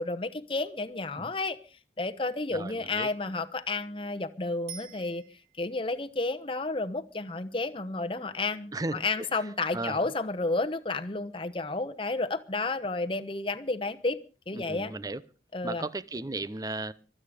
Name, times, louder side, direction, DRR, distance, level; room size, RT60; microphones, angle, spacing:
voice 1, 0.0-1.6 2.0-5.2 5.6-14.2 14.5-14.9 15.5-15.9, left 3 dB, 30° left, 1.1 m, -31 dB
voice 2, 2.5-3.1 8.7-10.0 14.5-15.2 15.6-16.9, right 2 dB, 20° right, 0.7 m, -36 dB
Bicycle bell, 4.7-5.8 14.9-15.0, right 8 dB, 70° right, 3.3 m, -46 dB
24.5 x 8.7 x 5.0 m
head